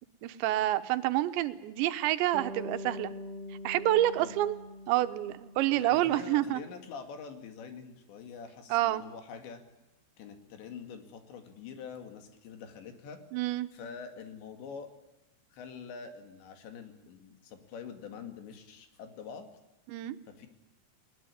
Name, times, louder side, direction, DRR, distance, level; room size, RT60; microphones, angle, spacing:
voice 1, 0.2-3.1 3.7-4.6 4.9-6.6 8.7-9.0 13.3-13.7 19.9-20.2, right 14 dB, 85° right, 11 dB, 3.3 m, -28 dB
Bass guitar, 2.3-6.4, left 1 dB, 10° left, 2.5 m, -44 dB
voice 2, 5.8-9.6 10.2-13.2 13.7-14.9 15.5-19.5 20.3-20.5, left 6 dB, 80° left, 7 dB, 4.5 m, -45 dB
20.5 x 20.5 x 9.8 m, 0.97 s
omnidirectional pair, 5.0 m